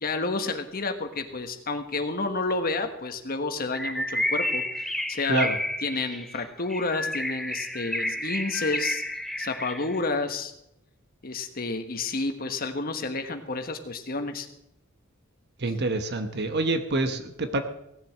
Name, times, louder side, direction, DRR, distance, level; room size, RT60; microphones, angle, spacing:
voice 1, 0.0-5.5 5.8-9.0 9.4-10.5 11.2-14.5, left 3 dB, 45° left, 7 dB, 1.4 m, -30 dB
Bird, 3.7-10.0, left 1 dB, ahead, 0.7 m, -31 dB
voice 2, 15.6-17.6, right 2 dB, 55° right, 8 dB, 1.1 m, -26 dB
17.0 x 7.7 x 7.5 m, 0.82 s
head